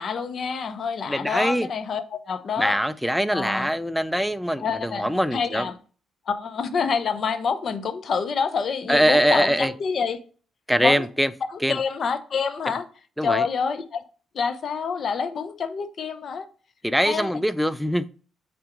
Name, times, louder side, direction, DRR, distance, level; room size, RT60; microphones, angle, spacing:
voice 1, 0.0-2.8 3.3-3.7 4.6-5.8 6.3-10.2 10.8-11.1 11.5-12.8 13.2-14.0 14.3-16.5 17.0-17.3, left 5 dB, 50° left, 0.8 m, -27 dB
voice 2, 1.1-1.7 2.6-5.7 8.9-9.7 10.7-11.3 11.6-11.8 13.2-13.5 16.8-18.1, equal, ahead, 0.4 m, -23 dB
5.9 x 3.6 x 5.1 m
cardioid pair, 90°, 0 cm